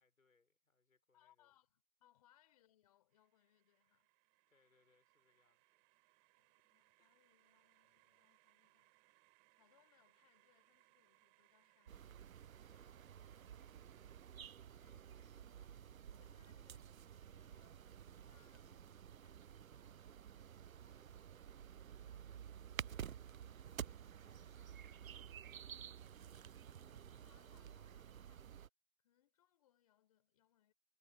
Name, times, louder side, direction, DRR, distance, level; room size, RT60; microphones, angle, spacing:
voice 1, 0.0-1.5 4.5-5.9 12.7-16.2 17.3-17.7 20.8-26.0, left 3 dB, 75° left, 5.3 m, -79 dB
voice 2, 1.1-4.1 6.4-9.0 9.5-12.3 14.9-15.2 16.1-17.8 18.1-20.3 26.7-28.7 29.0-30.7, left 12 dB, 25° left, 4.4 m, -75 dB
sound 1, 3.1-14.4, right 37 dB, 15° right, 3.9 m, -74 dB
sound 2, 11.9-28.7, right 9 dB, 75° right, 0.6 m, -52 dB
figure-of-eight pair, 155°, 41 cm